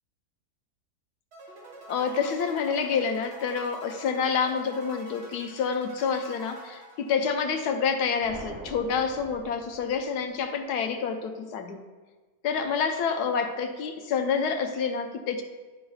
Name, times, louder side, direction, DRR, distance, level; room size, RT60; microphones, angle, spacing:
sound 1, 1.3-7.6, right 1 dB, 90° right, 2.4 m, -47 dB
voice 1, 1.9-11.8 12.4-15.4, left 6 dB, 80° left, 6 dB, 1.2 m, -28 dB
sound 2, 8.2-10.4, right 1 dB, 10° right, 0.9 m, -44 dB
11.5 x 5.5 x 2.3 m, 1.3 s
omnidirectional pair, 1.7 m